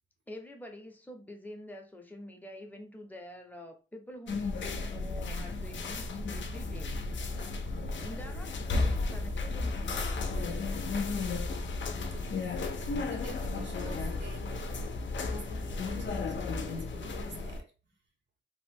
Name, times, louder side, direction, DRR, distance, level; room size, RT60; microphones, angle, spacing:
voice 1, 0.3-7.6 8.0-10.4, left 1 dB, 10° left, 0.5 m, -47 dB
sound 1, 4.3-17.6, left 3 dB, 75° left, 0.5 m, -34 dB
voice 2, 11.0-11.4 12.0-12.4 12.8-14.7 15.2-16.4 16.6-17.7, right 3 dB, 70° right, 0.8 m, -50 dB
2.7 x 2.1 x 3.3 m
wide cardioid pair, 170°, 19 cm